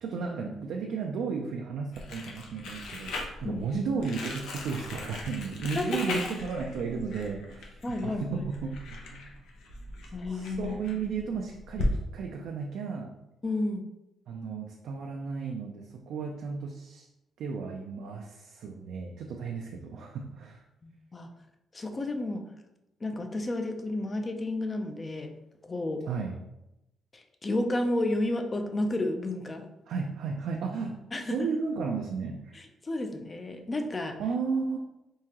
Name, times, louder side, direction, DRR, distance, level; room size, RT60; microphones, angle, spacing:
voice 1, 0.0-9.3 10.3-13.1 14.3-17.1 17.4-20.6 26.0-26.3 29.9-32.7 34.2-34.8, right 5 dB, 75° right, 1 dB, 0.4 m, -34 dB
Crumpling crinkling, 1.9-11.9, left 2 dB, 85° left, 0.7 m, -38 dB
voice 2, 7.8-8.5 10.1-10.8 13.4-13.8 20.8-21.3 21.7-22.4 23.0-25.3 25.6-26.0 27.1-29.7 31.1-31.5 32.5-34.2, left 2 dB, 30° left, 6 dB, 0.5 m, -31 dB
3.6 x 2.7 x 2.9 m, 0.92 s
cardioid pair, 90°, 0 cm